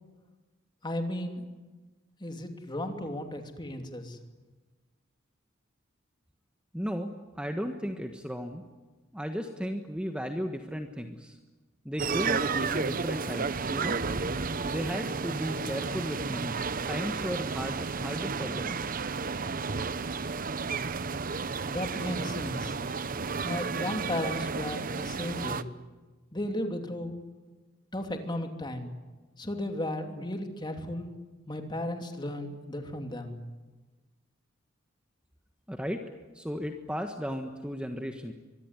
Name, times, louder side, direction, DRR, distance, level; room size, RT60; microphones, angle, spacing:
voice 1, 0.8-1.5 2.2-4.2 21.7-22.7 23.4-25.7 26.3-27.1 27.9-28.9 29.4-31.1 31.5-33.4, left 1 dB, 20° left, 5 dB, 2.9 m, -35 dB
voice 2, 6.7-8.6 9.1-11.4 11.8-14.0 14.6-18.8 35.7-36.0 36.3-38.3, equal, 5° right, 5 dB, 1.4 m, -35 dB
sound 1, 12.0-25.6, right 4 dB, 45° right, 0.9 m, -32 dB
24.5 x 22.5 x 9.8 m, 1.2 s
head